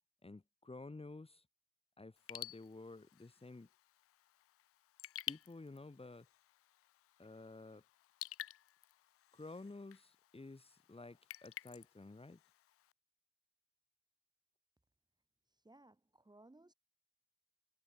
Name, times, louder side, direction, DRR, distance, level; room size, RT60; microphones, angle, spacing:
voice 1, 0.2-1.4 2.0-3.7 5.3-6.3 7.2-7.8 9.3-12.4, left 2 dB, 20° left, 2.4 m, -52 dB
Raindrop / Drip, 2.2-12.9, left 13 dB, 50° left, 0.5 m, -52 dB
voice 2, 15.5-16.7, right 2 dB, 15° right, 1.9 m, -62 dB
hypercardioid pair, 50°, 31 cm